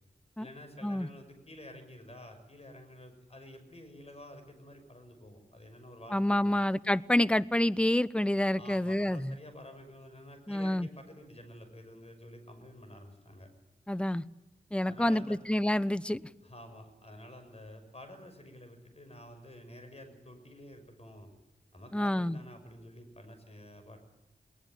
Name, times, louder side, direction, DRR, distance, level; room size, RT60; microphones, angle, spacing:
voice 1, 0.4-6.6 8.6-13.5 14.8-15.4 16.4-21.3 21.7-24.0, left 1 dB, 40° left, 6.1 m, -50 dB
voice 2, 6.1-9.4 10.5-10.9 13.9-14.2 14.7-16.2 21.9-22.4, left 1 dB, 5° left, 0.7 m, -28 dB
20.5 x 20.5 x 9.0 m
wide cardioid pair, 75°, 17 cm